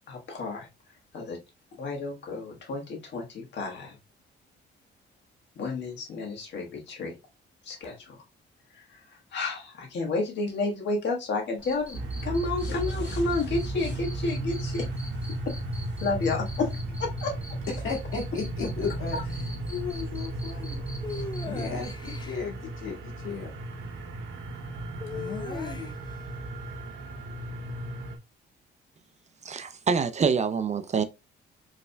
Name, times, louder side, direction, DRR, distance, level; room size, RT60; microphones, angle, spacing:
voice 1, 0.1-0.7 1.1-1.4 1.8-4.0 5.6-7.1 7.6-8.2 8.7-14.9 15.3-15.5 16.0-16.7 17.0-17.4 19.1-19.2, left 3 dB, 65° left, 1.5 m, -31 dB
Cricket, 11.6-22.2, right 1 dB, 5° right, 1.2 m, -47 dB
sound 1, 11.9-28.2, right 1 dB, 75° right, 0.9 m, -35 dB
voice 2, 17.8-19.4 19.7-23.6 25.1-25.9, left 5 dB, 85° left, 1.9 m, -36 dB
sound 2, 21.0-22.4 25.0-26.2, left 5 dB, 20° left, 0.5 m, -38 dB
voice 3, 29.4-31.0, right 5 dB, 35° right, 0.5 m, -26 dB
5.3 x 3.3 x 2.2 m
cardioid pair, 90°, 20 cm